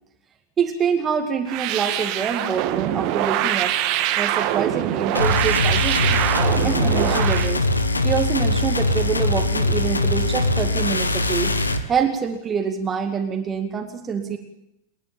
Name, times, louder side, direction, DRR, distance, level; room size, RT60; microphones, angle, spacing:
voice 1, 0.6-3.8 4.2-6.2 6.6-7.6 8.0-11.5 11.9-14.4, right 7 dB, 20° right, 4 dB, 2.2 m, -26 dB
sound 1, 1.5-7.5, right 13 dB, 45° right, 2.1 m, -23 dB
sound 2, 5.1-11.8, left 2 dB, 80° left, 1.6 m, -21 dB
29.0 x 11.0 x 9.0 m, 0.83 s
figure-of-eight pair, 90°, 0 cm